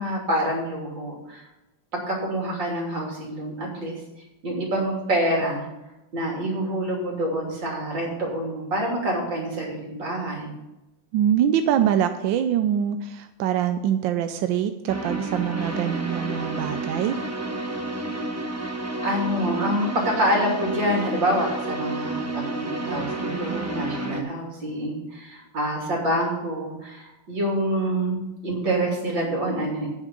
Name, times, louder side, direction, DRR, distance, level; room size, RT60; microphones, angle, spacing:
voice 1, 0.0-1.4 1.9-4.0 4.4-5.7 6.1-10.5 19.0-29.9, right 1 dB, 60° right, -2 dB, 3.7 m, -26 dB
voice 2, 11.1-17.2, right 9 dB, 75° right, 8 dB, 1.2 m, -24 dB
sound 1, 14.9-24.2, right 2 dB, 15° right, 0.6 m, -30 dB
9.6 x 7.3 x 6.8 m, 0.97 s
omnidirectional pair, 2.3 m